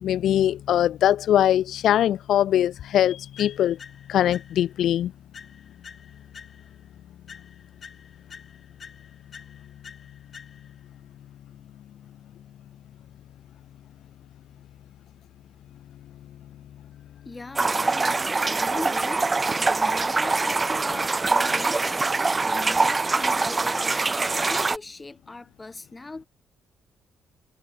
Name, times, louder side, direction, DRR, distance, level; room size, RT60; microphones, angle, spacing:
voice 1, 0.0-3.8 4.1-5.1, left 11 dB, 75° left, 0.5 m, -22 dB
sound 1, 3.4-4.9 5.3-6.9 7.3-10.9, left 6 dB, 45° left, 4.4 m, -48 dB
voice 2, 17.2-26.3, left 3 dB, 20° left, 3.9 m, -40 dB
sound 2, 17.6-24.8, right 3 dB, 25° right, 0.7 m, -24 dB
cardioid pair, 90°, 0 cm